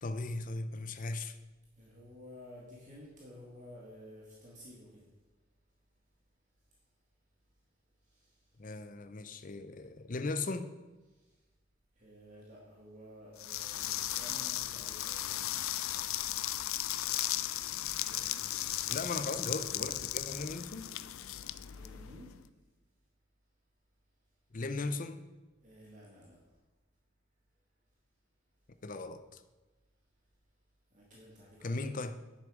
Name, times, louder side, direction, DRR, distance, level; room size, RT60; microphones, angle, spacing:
voice 1, 0.0-1.4 8.6-10.7 18.9-20.9 24.5-25.2 28.8-29.4 31.6-32.1, left 3 dB, 40° left, 10 dB, 0.6 m, -37 dB
voice 2, 1.8-5.0 8.1-8.3 12.0-16.0 18.0-19.1 21.7-22.3 25.6-26.4 30.9-31.9, equal, 40° right, -4 dB, 1.9 m, -53 dB
sound 1, 13.4-22.4, left 13 dB, 85° left, 0.4 m, -36 dB
10.0 x 7.2 x 5.0 m, 1.2 s
head